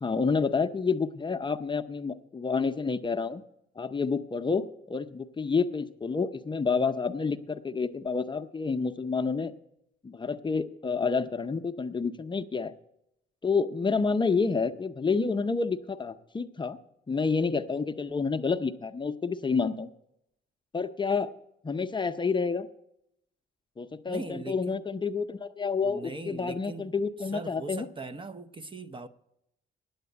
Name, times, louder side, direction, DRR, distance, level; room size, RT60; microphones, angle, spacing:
voice 1, 0.0-3.4 3.8-9.5 10.0-12.7 13.4-16.8 17.1-19.9 20.7-21.3 21.6-22.7 23.8-27.9, left 4 dB, 25° left, 0.6 m, -29 dB
voice 2, 24.1-24.8 25.8-26.9 27.3-29.1, right 3 dB, 25° right, 0.6 m, -40 dB
9.4 x 8.0 x 8.0 m
cardioid pair, 90°, 20 cm